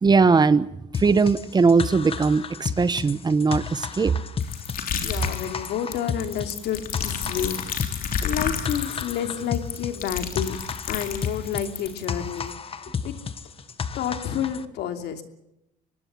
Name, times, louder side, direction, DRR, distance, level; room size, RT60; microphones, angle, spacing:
voice 1, 0.0-0.7 1.0-4.2, right 4 dB, 25° right, 16 dB, 1.0 m, -19 dB
sound 1, 0.9-14.6, left 6 dB, 35° left, 1.4 m, -33 dB
sound 2, 4.4-12.0, left 7 dB, 55° left, 3.6 m, -31 dB
voice 2, 5.0-7.6 8.2-10.6 10.9-13.1 13.9-15.2, left 9 dB, 75° left, 7 dB, 3.0 m, -30 dB
24.5 x 19.5 x 7.2 m, 0.85 s
cardioid pair, 110°, 17 cm